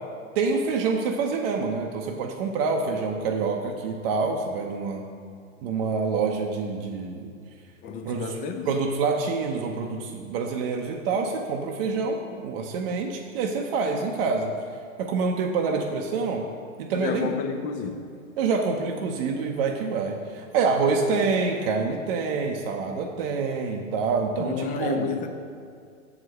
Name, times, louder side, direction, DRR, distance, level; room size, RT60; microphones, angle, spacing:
voice 1, 0.4-5.0 5.6-7.3 8.0-8.4 8.6-12.2 12.4-14.5 15.0-16.4 16.8-17.3 18.4-25.1, right 4 dB, 45° right, 2 dB, 0.8 m, -26 dB
voice 2, 7.8-8.7 16.9-18.1 24.4-25.3, left 6 dB, 20° left, 6 dB, 0.5 m, -30 dB
7.3 x 5.0 x 6.4 m, 2.3 s
hypercardioid pair, 110°, 40 cm